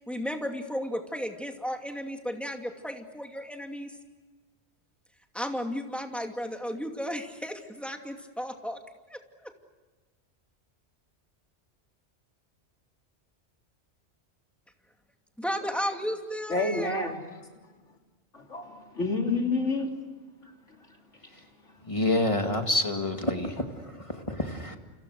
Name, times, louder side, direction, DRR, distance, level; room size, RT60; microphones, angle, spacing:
voice 1, 0.0-3.9 5.3-8.8 9.1-9.5 15.4-17.0, equal, ahead, 2.5 m, -34 dB
voice 2, 16.5-17.2 18.3-19.9 20.4-21.0, left 3 dB, 85° left, 3.8 m, -29 dB
voice 3, 21.8-24.8, left 1 dB, 25° left, 2.2 m, -28 dB
30.0 x 27.5 x 6.5 m
omnidirectional pair, 1.2 m